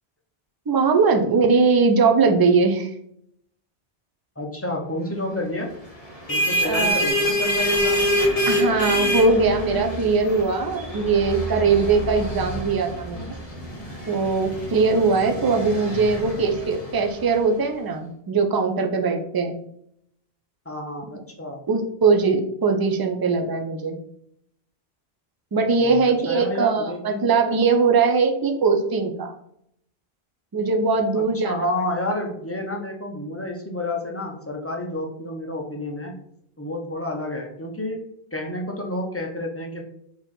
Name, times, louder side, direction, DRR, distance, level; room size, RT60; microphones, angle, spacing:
voice 1, 0.7-2.9 6.6-7.1 8.5-13.3 14.1-19.6 21.7-24.0 25.5-29.3 30.5-31.7, right 4 dB, 35° right, 4 dB, 0.4 m, -21 dB
voice 2, 4.4-5.7 6.3-8.2 20.7-21.6 25.8-27.3 31.1-36.2 36.6-38.0 38.3-39.8, left 1 dB, 15° left, 0 dB, 0.6 m, -30 dB
sound 1, 6.0-17.3, equal, 35° left, 1.2 m, -26 dB
4.5 x 3.0 x 3.8 m, 0.72 s
omnidirectional pair, 1.0 m